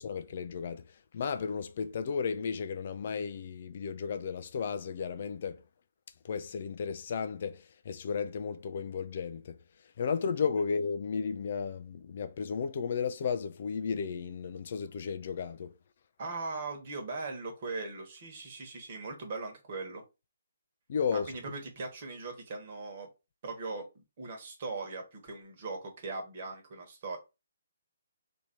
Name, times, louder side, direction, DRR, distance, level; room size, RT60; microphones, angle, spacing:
voice 1, 0.0-5.6 6.2-9.6 10.0-15.7 20.9-21.3, left 6 dB, 45° left, 0.4 m, -34 dB
voice 2, 16.2-20.0 21.1-23.1 23.4-23.9 24.2-27.2, right 3 dB, 40° right, 1.3 m, -39 dB
2.9 x 2.7 x 4.3 m
figure-of-eight pair, 140°, 0 cm